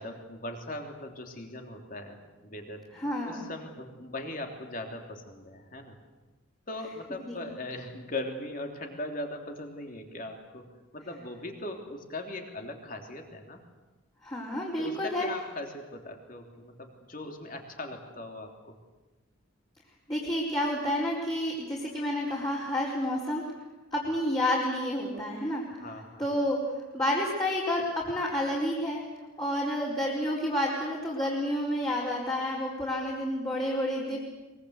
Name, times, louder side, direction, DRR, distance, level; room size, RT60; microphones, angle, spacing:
voice 1, 0.0-2.2 2.4-6.0 6.7-13.6 14.8-18.7 25.8-26.4, left 1 dB, 40° left, 3 dB, 3.2 m, -40 dB
voice 2, 3.0-3.4 7.3-7.4 14.2-15.3 20.1-23.4 23.9-25.6 26.2-26.6 26.9-29.0 29.4-34.2, left 1 dB, 20° left, -7 dB, 4.6 m, -29 dB
24.0 x 22.5 x 8.2 m, 1.2 s
head